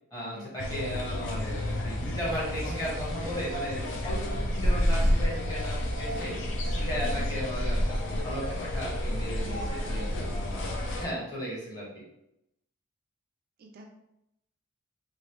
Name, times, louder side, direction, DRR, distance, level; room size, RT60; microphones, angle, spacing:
voice 1, 0.1-6.3 6.7-10.6 11.0-12.0, equal, 20° left, -6 dB, 1.1 m, -36 dB
sound 1, 0.6-11.0, equal, 60° left, 0.5 m, -30 dB
voice 2, 9.9-10.3 13.6-13.8, right 2 dB, 45° right, 2 dB, 0.3 m, -46 dB
3.0 x 2.5 x 2.9 m, 0.84 s
head